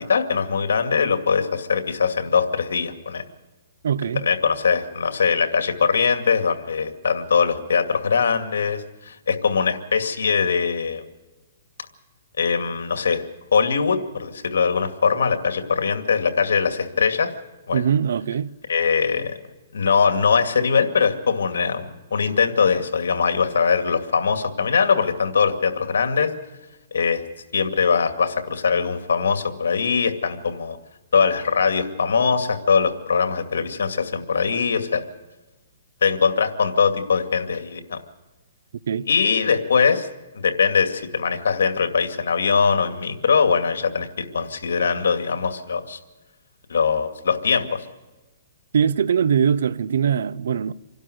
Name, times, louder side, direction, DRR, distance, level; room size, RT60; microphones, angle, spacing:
voice 1, 0.1-3.2 4.1-11.0 12.4-13.2 13.5-17.3 17.7-17.8 18.7-19.3 19.7-26.3 26.9-27.2 27.5-30.8 31.1-35.0 36.0-38.0 39.1-40.1 40.3-46.0 46.7-47.8, left 5 dB, 90° left, 2.3 m, -21 dB
voice 2, 3.8-4.3 17.7-18.6 38.9-39.1 48.7-50.7, right 8 dB, 75° right, 0.8 m, -21 dB
27.5 x 12.0 x 8.1 m
hypercardioid pair, 150°, 0 cm